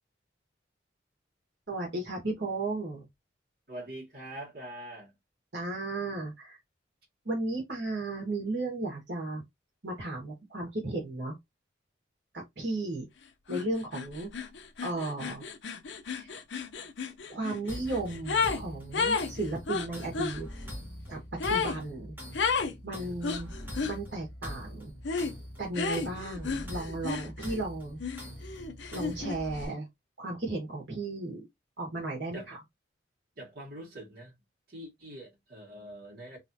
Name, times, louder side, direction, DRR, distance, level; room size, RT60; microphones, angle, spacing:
voice 1, 1.7-3.0 5.5-6.6 7.2-9.4 9.8-11.3 12.3-13.0 13.5-14.3 14.8-15.4 16.2-16.3 17.3-20.5 21.1-21.2 21.5-22.1 22.8-23.5 23.8-24.9 25.6-28.0 28.9-29.9 30.2-31.4 31.8-32.6, right 2 dB, 70° right, 1.7 m, -34 dB
voice 2, 3.7-5.1 32.3-32.5 33.4-34.3 34.7-36.4, right 1 dB, 55° right, 2.0 m, -44 dB
sound 1, 13.5-13.6 13.9-18.6 18.9-20.4 21.4-21.8 22.3-22.7 23.2-24.0 25.0-25.3 25.7-27.6 28.0-29.4, left 5 dB, 75° left, 0.6 m, -32 dB
sound 2, 17.7-29.6, equal, 10° right, 1.5 m, -43 dB
3.6 x 3.1 x 2.7 m
head